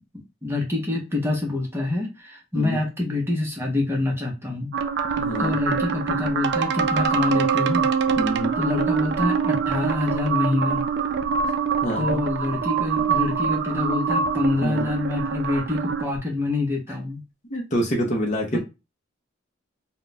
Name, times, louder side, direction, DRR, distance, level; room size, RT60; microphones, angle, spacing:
voice 1, 0.4-4.7 5.4-7.9 8.6-10.8 12.0-17.2 18.5-18.6, left 2 dB, 10° right, 0 dB, 0.7 m, -26 dB
sound 1, 4.7-16.1, right 6 dB, 55° right, 0.3 m, -24 dB
voice 2, 5.2-5.5 8.2-8.5 11.4-11.5 11.8-12.2 14.6-14.8 17.5-18.6, equal, 35° left, 0 dB, 0.6 m, -26 dB
2.3 x 2.1 x 3.9 m, 0.26 s
head